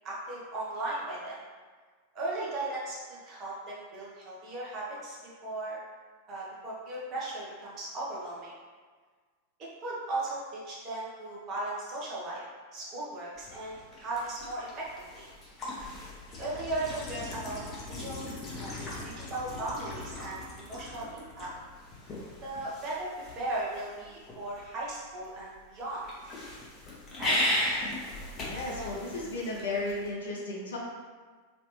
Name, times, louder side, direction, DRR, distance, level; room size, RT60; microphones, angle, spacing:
voice 1, 0.0-1.4 2.1-5.2 5.4-5.8 6.3-8.5 9.6-12.5 12.7-15.3 16.3-17.6 17.9-18.2 18.6-21.5 22.4-23.1 23.4-26.0 27.2-27.4 28.5-28.9, right 2 dB, 35° right, -6 dB, 1.0 m, -37 dB
sound 1, 13.4-30.1, left 1 dB, 25° left, 0.9 m, -38 dB
voice 2, 28.4-30.8, left 2 dB, 65° left, -3 dB, 0.8 m, -34 dB
3.2 x 2.9 x 3.2 m, 1.5 s
figure-of-eight pair, 90°, 0 cm